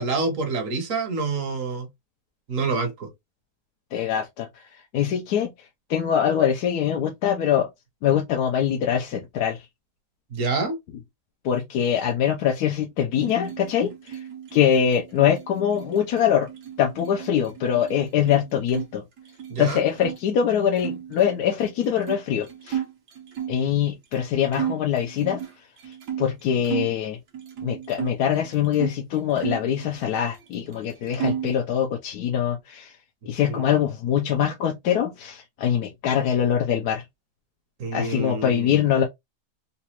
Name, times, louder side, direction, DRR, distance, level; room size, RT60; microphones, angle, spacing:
voice 1, 0.0-1.9 2.5-3.1 10.3-10.8 19.5-19.8 33.2-33.6 37.8-38.8, right 3 dB, 55° right, 1.3 m, -27 dB
voice 2, 3.9-7.7 8.0-9.7 11.4-14.3 14.5-16.5 16.8-19.0 19.6-22.8 23.5-27.2 27.6-33.0 33.3-37.0 37.9-39.0, left 9 dB, 75° left, 1.1 m, -23 dB
sound 1, 13.2-18.9 19.2-20.2 20.8-23.6 24.1-24.2 24.5-27.0 27.3-29.0 29.4-30.5 30.7-31.6, right 9 dB, 80° right, 1.5 m, -34 dB
4.1 x 2.3 x 2.9 m
omnidirectional pair, 1.7 m